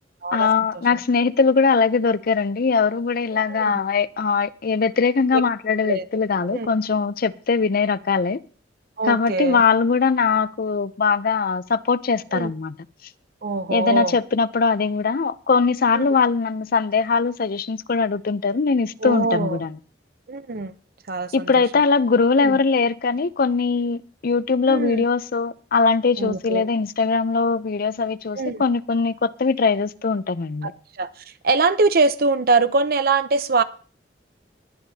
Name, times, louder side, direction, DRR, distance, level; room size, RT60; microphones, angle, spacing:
voice 1, 0.3-8.4 9.0-12.8 13.7-19.8 21.3-30.7, left 5 dB, 55° left, 0.5 m, -21 dB
voice 2, 9.0-9.6 12.3-12.5 13.4-14.1 15.9-16.1 19.0-19.6 20.3-20.7 21.1-21.5 22.4-22.6 24.7-25.0 26.2-26.7 28.4-28.6 30.6-30.7 31.0-31.1 31.4-33.6, right 3 dB, 55° right, 0.7 m, -22 dB
21.0 x 10.0 x 2.8 m
head